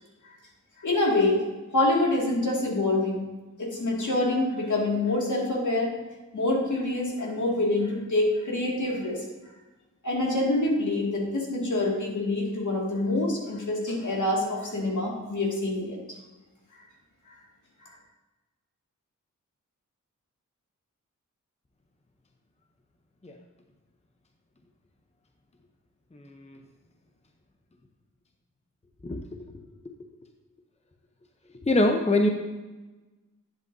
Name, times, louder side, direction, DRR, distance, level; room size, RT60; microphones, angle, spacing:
voice 1, 0.8-1.4 1.7-3.3 3.6-6.0 6.3-9.2 10.0-16.0, left 2 dB, 65° left, -2 dB, 2.3 m, -26 dB
voice 2, 26.1-26.6 29.0-29.2 29.8-29.9 31.6-32.3, left 1 dB, 20° left, 4 dB, 0.7 m, -24 dB
10.5 x 7.8 x 2.7 m, 1.2 s
wide cardioid pair, 75°, 32 cm